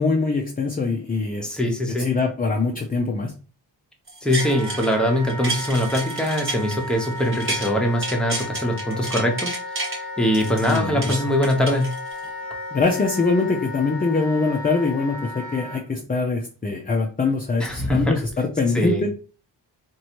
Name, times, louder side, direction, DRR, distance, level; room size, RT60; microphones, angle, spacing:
voice 1, 0.0-1.5 2.0-3.3 10.7-11.2 12.7-19.1, left 3 dB, 20° left, 0 dB, 0.5 m, -23 dB
voice 2, 1.4-2.1 4.2-11.9 17.6-18.2 18.7-19.1, equal, ahead, 1 dB, 0.8 m, -23 dB
sound 1, 4.1-4.9 5.3-7.7 8.0-10.0 10.3-12.3 12.8-12.9, right 2 dB, 30° right, 1.0 m, -31 dB
Wind instrument woodwind instrument, 4.4-15.8, left 2 dB, 80° right, 1.3 m, -34 dB
3.0 x 2.6 x 2.9 m, 0.36 s
cardioid pair, 75°, 44 cm